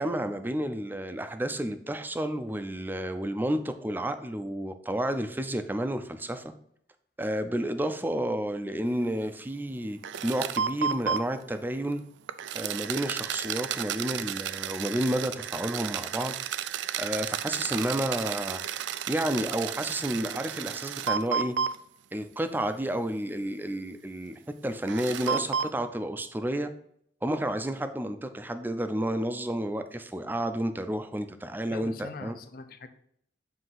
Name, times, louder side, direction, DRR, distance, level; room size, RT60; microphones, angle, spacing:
voice 1, 0.0-6.5 7.2-12.0 12.5-16.4 17.0-18.6 19.1-21.5 22.1-26.7 27.2-32.4, right 1 dB, 10° right, 9 dB, 0.4 m, -31 dB
sound 1, 10.0-11.2 12.3-21.8 22.6-22.7 24.9-25.7, right 8 dB, 90° right, 0.4 m, -32 dB
voice 2, 31.7-32.9, left 3 dB, 55° left, 9 dB, 0.6 m, -42 dB
7.7 x 2.8 x 5.6 m, 0.69 s
head